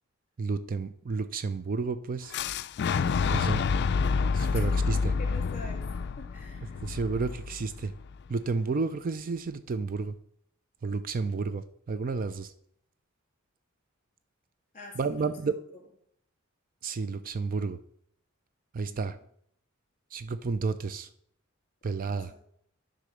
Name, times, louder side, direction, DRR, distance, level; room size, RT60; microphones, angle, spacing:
voice 1, 0.4-2.4 3.3-3.6 4.3-5.1 6.8-7.9 8.3-10.2 10.8-12.5 15.0-15.5 16.8-17.8 18.7-19.2 20.1-21.1 21.8-22.3, right 4 dB, 40° right, 12 dB, 0.4 m, -31 dB
Fire / Explosion, 2.3-8.2, left 5 dB, 55° left, 0.4 m, -28 dB
voice 2, 5.2-5.8 6.2-6.8 14.7-15.8 18.9-19.2 22.1-22.4, left 2 dB, 35° left, 1 dB, 2.8 m, -46 dB
10.0 x 3.9 x 6.4 m, 0.68 s
head